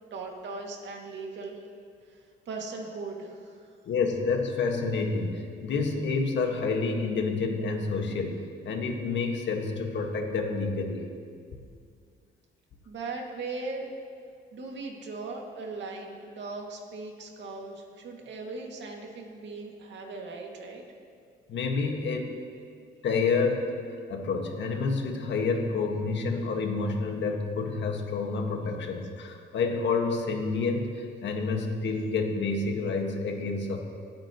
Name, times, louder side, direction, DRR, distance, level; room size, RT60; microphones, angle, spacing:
voice 1, 0.1-1.6 2.1-2.2 2.5-3.7 12.9-13.9 14.5-20.8, right 3 dB, 65° right, 0 dB, 2.2 m, -38 dB
voice 2, 3.9-8.4 8.6-11.0 21.5-22.3 23.0-23.7 24.1-33.8, left 4 dB, 65° left, 2 dB, 1.7 m, -28 dB
26.0 x 8.9 x 3.0 m, 2.2 s
cardioid pair, 90°, 20 cm